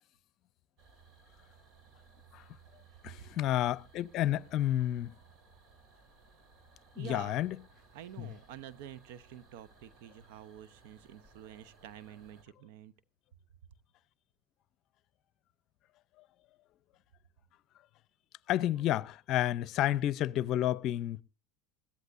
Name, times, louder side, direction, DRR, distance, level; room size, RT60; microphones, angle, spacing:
sound 1, 0.8-12.4, right 4 dB, 50° right, 3.7 m, -61 dB
voice 1, 3.0-5.1 7.0-7.6 8.2-8.3 18.5-21.2, left 13 dB, 55° left, 0.6 m, -30 dB
voice 2, 6.9-7.5 7.9-12.9, right 10 dB, 70° right, 0.9 m, -48 dB
21.5 x 14.5 x 2.6 m
hypercardioid pair, 85°, 0 cm